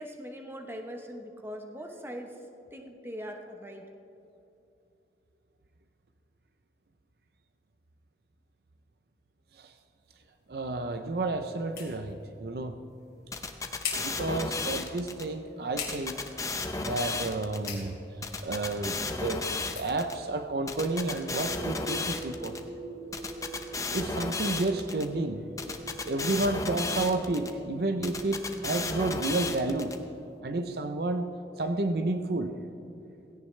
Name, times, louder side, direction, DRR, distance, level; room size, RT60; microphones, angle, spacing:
voice 1, 0.0-2.3 2.7-3.9, equal, 15° right, 3 dB, 1.0 m, -41 dB
sound 1, 10.0-21.5, left 6 dB, 55° left, 2.8 m, -45 dB
voice 2, 10.5-12.9 14.0-16.2 16.8-22.6 23.9-25.5 26.0-30.1 30.4-31.3 31.6-32.6, right 2 dB, 60° right, 8 dB, 0.6 m, -31 dB
sound 2, 13.3-15.2 15.8-17.7 18.2-20.1 20.7-22.6 23.1-25.1 25.6-27.5 28.0-30.0, left 3 dB, 20° left, 0.6 m, -33 dB
sound 3, 21.2-27.0, right 2 dB, 35° right, 1.9 m, -43 dB
17.0 x 16.0 x 3.3 m, 2.8 s
head